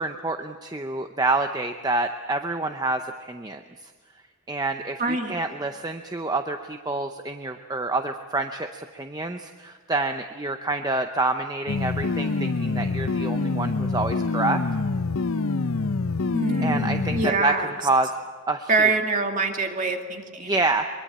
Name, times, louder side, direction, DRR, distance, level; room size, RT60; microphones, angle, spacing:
voice 1, 0.0-3.6 4.5-14.6 16.6-17.5 17.8-18.1 18.5-18.7 20.4-20.9, right 2 dB, 15° right, 7 dB, 0.7 m, -27 dB
voice 2, 5.0-5.4 16.3-17.7 18.7-20.5, right 3 dB, 35° right, 4 dB, 2.3 m, -25 dB
sound 1, 11.7-17.3, left 3 dB, 70° left, 0.7 m, -26 dB
23.0 x 23.0 x 8.6 m, 1.5 s
head